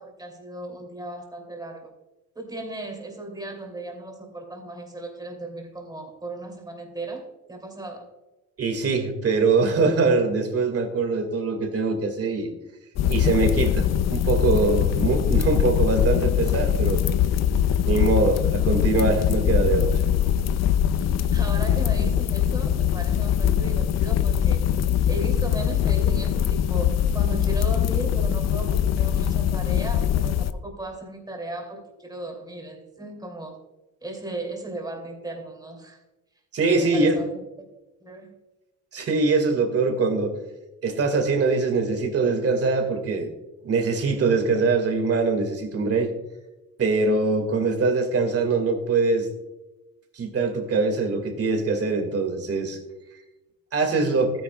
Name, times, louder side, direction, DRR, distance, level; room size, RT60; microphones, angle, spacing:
voice 1, 0.0-1.9 2.3-8.1 21.3-24.7 25.1-33.6 34.0-36.0 36.7-37.4 38.0-38.3, right 2 dB, 15° right, 2 dB, 2.8 m, -36 dB
voice 2, 8.6-12.5 13.1-17.0 17.9-20.0 36.5-37.2 38.9-40.4 40.8-43.3 43.6-46.1 46.8-49.3 50.1-52.8 53.7-54.3, right 3 dB, 50° right, 6 dB, 2.1 m, -23 dB
sound 1, 13.0-30.5, left 9 dB, 60° left, 0.6 m, -22 dB
13.5 x 9.9 x 2.3 m, 1.0 s
cardioid pair, 90°, 30 cm